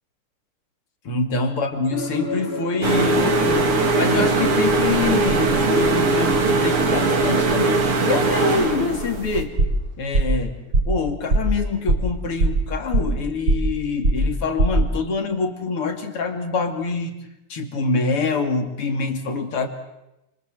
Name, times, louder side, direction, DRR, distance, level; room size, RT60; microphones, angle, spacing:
voice 1, 1.1-9.5 10.0-10.6 10.9-17.1 17.5-19.7, left 4 dB, 80° left, 6 dB, 3.5 m, -25 dB
sound 1, 1.9-9.8 10.0-10.3, right 1 dB, 30° right, 3.9 m, -32 dB
sound 2, 2.8-9.4, right 3 dB, 80° right, 3.6 m, -20 dB
sound 3, 9.6-9.9 10.1-10.4 10.7-11.0 11.3-11.6 11.9-12.1 12.4-13.2 13.5-13.8 14.0-14.3 14.6-14.9, right 2 dB, 55° right, 5.6 m, -19 dB
29.5 x 24.5 x 7.7 m, 0.92 s
omnidirectional pair, 2.4 m